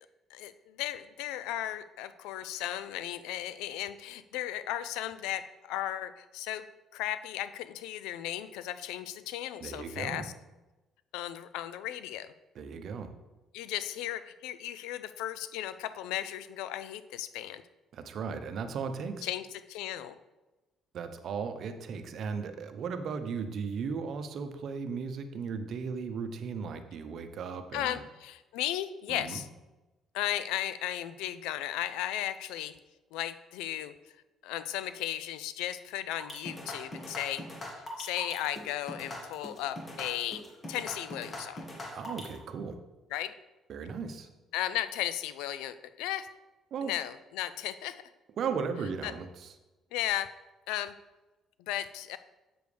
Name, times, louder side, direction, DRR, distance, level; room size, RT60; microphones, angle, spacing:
voice 1, 0.3-6.6 6.9-10.3 11.1-12.3 13.5-17.6 19.2-20.2 27.7-29.5 30.1-32.7 33.1-33.9 34.4-37.4 38.0-40.4 40.7-41.6 43.1-43.3 44.5-46.3 46.8-48.0 49.0-49.1 49.9-50.3 50.7-50.9 51.6-52.2, left 12 dB, 90° left, 13 dB, 0.4 m, -35 dB
voice 2, 9.6-10.2 12.5-13.1 17.9-19.3 20.9-28.0 29.1-29.4 41.9-42.8 43.7-44.3 46.7-46.9 48.4-49.5, right 5 dB, 60° right, 8 dB, 0.7 m, -36 dB
sound 1, 36.2-42.4, left 1 dB, 35° left, 1.8 m, -41 dB
7.7 x 6.9 x 3.3 m, 1.1 s
cardioid pair, 80°, 0 cm